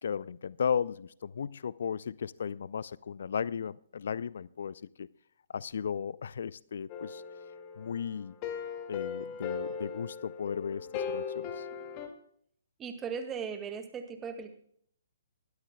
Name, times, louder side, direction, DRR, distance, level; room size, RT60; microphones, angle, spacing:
voice 1, 0.0-5.1 5.5-7.2 7.8-8.3 8.9-11.7, left 7 dB, 60° left, 0.4 m, -35 dB
sound 1, 6.9-12.1, left 6 dB, 30° left, 2.0 m, -38 dB
voice 2, 12.8-14.5, right 6 dB, 15° right, 1.9 m, -38 dB
21.0 x 13.0 x 2.2 m
figure-of-eight pair, 130°, 0 cm